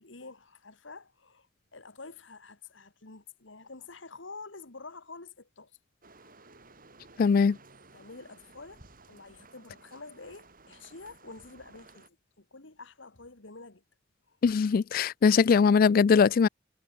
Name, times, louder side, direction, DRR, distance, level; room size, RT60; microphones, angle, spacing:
voice 1, 0.0-1.5 1.7-5.8 6.1-6.5 7.9-13.8 14.3-14.4, left 3 dB, 70° left, 2.1 m, -48 dB
sound 1, 6.0-12.1, right 3 dB, 45° right, 7.2 m, -56 dB
voice 2, 7.2-7.6 14.4-16.5, left 5 dB, 50° left, 0.3 m, -21 dB
head